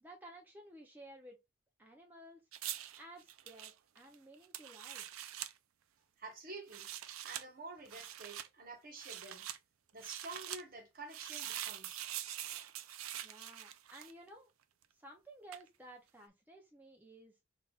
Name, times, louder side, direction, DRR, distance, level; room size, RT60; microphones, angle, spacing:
voice 1, 0.0-1.4 1.8-2.4 3.0-5.0 13.2-14.5 14.9-17.3, right 1 dB, 10° right, 0.5 m, -55 dB
sound 1, 2.5-5.5 6.6-7.4 7.9-8.5 9.0-9.6 10.0-10.6 11.1-14.3 15.5-15.7, right 12 dB, 80° right, 0.4 m, -44 dB
voice 2, 6.2-6.9 7.2-9.4 9.9-12.1, right 3 dB, 45° right, 1.1 m, -49 dB
5.6 x 2.6 x 2.3 m
head